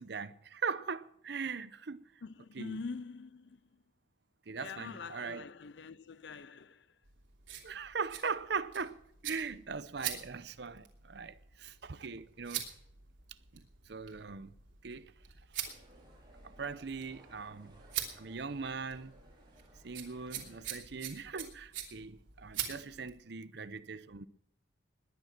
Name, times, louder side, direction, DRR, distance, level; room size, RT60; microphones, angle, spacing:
voice 1, 0.0-2.0 2.5-2.8 4.5-5.4 7.6-9.0 9.2-12.6 13.5-14.5 14.8-15.1 15.6-15.7 16.4-17.7 18.2-19.1 19.8-24.3, right 5 dB, 60° right, 0.7 m, -40 dB
voice 2, 2.2-3.8 4.6-6.9 20.3-20.8 22.7-23.2, left 4 dB, 65° left, 0.5 m, -46 dB
sound 1, 7.0-23.2, right 10 dB, 85° right, 3.0 m, -45 dB
sound 2, 15.7-20.9, right 1 dB, 25° right, 5.1 m, -61 dB
20.5 x 9.2 x 5.9 m
head